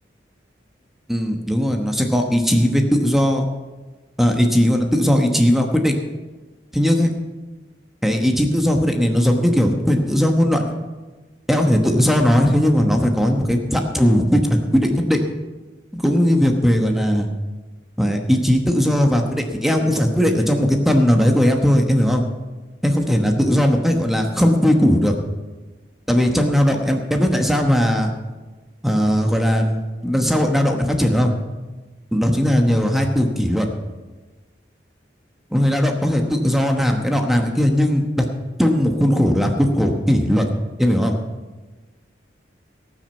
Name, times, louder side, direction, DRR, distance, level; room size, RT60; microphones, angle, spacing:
voice 1, 1.1-3.4 4.2-5.9 6.7-7.1 8.0-10.8 11.5-15.2 15.9-17.3 18.0-22.2 22.8-25.1 26.1-28.1 28.8-31.3 32.1-33.7 35.5-38.2 38.6-40.4 40.8-41.1, equal, ahead, 3 dB, 1.0 m, -18 dB
18.0 x 6.3 x 7.1 m, 1.3 s
head